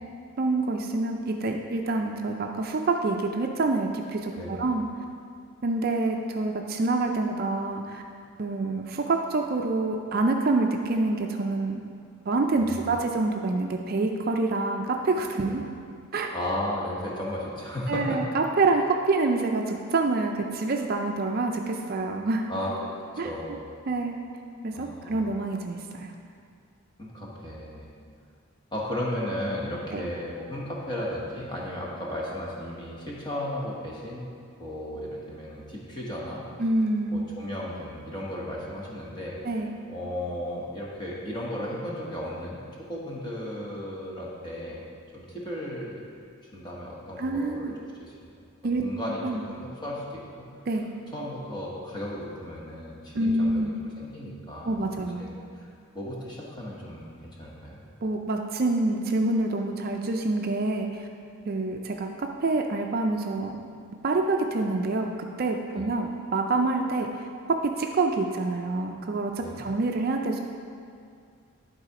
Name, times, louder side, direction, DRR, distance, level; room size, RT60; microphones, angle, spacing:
voice 1, 0.4-4.9 5.6-8.0 8.4-11.8 12.3-15.6 16.1-16.4 17.9-22.5 23.2-23.6 23.9-24.2 24.6-26.1 29.9-30.0 36.6-37.3 39.4-39.8 47.2-47.7 48.6-48.8 49.2-49.4 50.7-50.9 53.1-53.7 54.6-55.3 58.0-61.1 61.5-63.7 64.0-65.1 65.4-67.1 67.5-70.4, right 3 dB, 45° right, 3 dB, 0.4 m, -27 dB
voice 2, 4.3-4.7 12.6-12.9 15.5-15.6 16.3-18.2 22.5-23.7 24.7-25.3 27.0-27.9 28.7-34.3 34.6-36.5 37.1-39.4 39.9-44.8 45.1-46.0 46.5-47.7 48.0-48.1 48.8-50.5 51.1-53.7 54.0-54.8 55.2-55.7 55.9-57.8 65.7-65.9 69.4-69.7, left 1 dB, 20° left, -5 dB, 1.2 m, -35 dB
11.0 x 4.2 x 4.8 m, 2.3 s
head